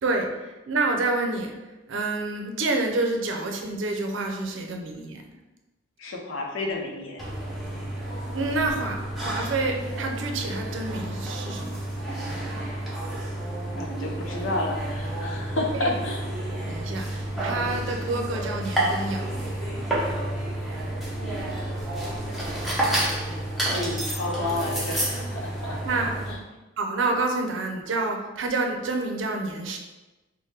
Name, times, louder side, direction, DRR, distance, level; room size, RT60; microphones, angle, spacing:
voice 1, 0.0-1.5 1.9-5.2 8.3-11.8 15.8-15.9 16.6-19.5 25.8-26.1 26.8-29.8, right 2 dB, 70° right, 3 dB, 0.5 m, -28 dB
voice 2, 6.0-7.3 13.7-16.2 23.7-26.4, left 2 dB, 80° left, 0 dB, 0.7 m, -31 dB
sound 1, 7.2-26.3, right 1 dB, ahead, 0.6 m, -30 dB
3.2 x 2.1 x 4.2 m, 1.1 s
head